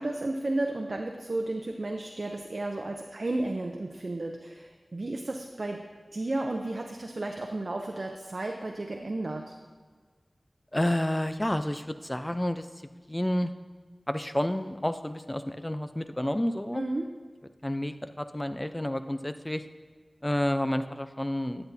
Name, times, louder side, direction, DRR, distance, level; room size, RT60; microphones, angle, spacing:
voice 1, 0.0-5.8 6.1-9.5 16.7-17.1, right 2 dB, 60° right, 2 dB, 0.6 m, -33 dB
voice 2, 10.7-12.7 13.1-13.5 14.1-16.8 17.6-19.6 20.2-21.6, left 1 dB, 20° left, 10 dB, 0.5 m, -30 dB
10.0 x 8.8 x 2.7 m, 1.5 s
wide cardioid pair, 50°, 0 cm